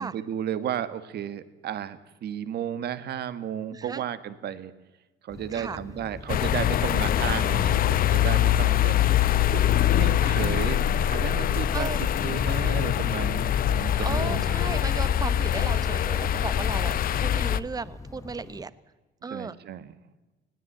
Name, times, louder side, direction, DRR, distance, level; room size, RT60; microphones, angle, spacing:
voice 1, 0.0-4.7 5.2-9.6 9.9-10.8 11.1-14.6 19.3-19.9, right 9 dB, 60° right, 13 dB, 1.6 m, -33 dB
voice 2, 3.7-4.0 5.5-5.8 10.2-10.5 11.7-12.0 14.0-18.7 19.2-19.6, right 4 dB, 20° right, 16 dB, 0.9 m, -35 dB
sound 1, 5.3-18.7, left 3 dB, 15° left, 0.9 m, -43 dB
sound 2, 6.3-17.6, left 11 dB, 50° left, 0.7 m, -23 dB
20.0 x 17.5 x 9.1 m, 1.1 s
cardioid pair, 130°, 19 cm